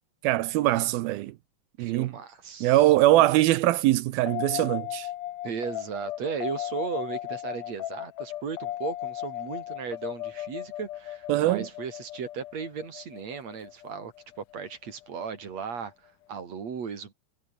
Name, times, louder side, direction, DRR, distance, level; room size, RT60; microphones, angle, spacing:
voice 1, 0.2-1.3 1.8-2.1 2.6-5.1 11.3-11.7, right 16 dB, 75° right, 2.3 m, -22 dB
voice 2, 1.8-2.9 5.4-17.1, right 6 dB, 40° right, 3.6 m, -36 dB
sound 1, 4.3-15.0, left 13 dB, 70° left, 2.0 m, -36 dB
omnidirectional pair, 5.2 m